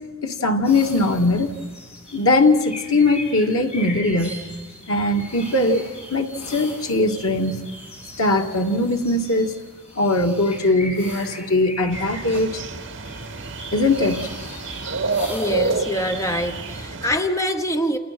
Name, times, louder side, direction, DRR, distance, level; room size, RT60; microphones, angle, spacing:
voice 1, 0.2-1.6 2.1-4.3 4.9-7.6 8.2-9.5 10.0-12.5 13.7-14.3, left 2 dB, 80° left, 3 dB, 2.1 m, -20 dB
sound 1, 0.6-16.9, left 1 dB, 30° left, 7.0 m, -39 dB
sound 2, 11.9-17.2, right 3 dB, 60° right, 2.1 m, -29 dB
voice 2, 15.3-18.0, equal, 15° left, 6 dB, 0.9 m, -24 dB
29.5 x 29.0 x 6.1 m, 1.3 s
head